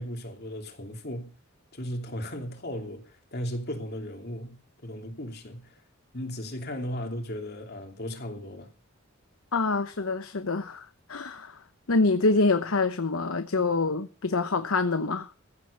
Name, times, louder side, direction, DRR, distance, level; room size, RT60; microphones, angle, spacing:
voice 1, 0.0-1.3 1.7-5.8 6.1-8.7, equal, 50° left, 2.9 m, -36 dB
voice 2, 9.5-11.6 11.9-15.3, left 3 dB, 80° left, 1.0 m, -26 dB
15.5 x 7.9 x 6.6 m
head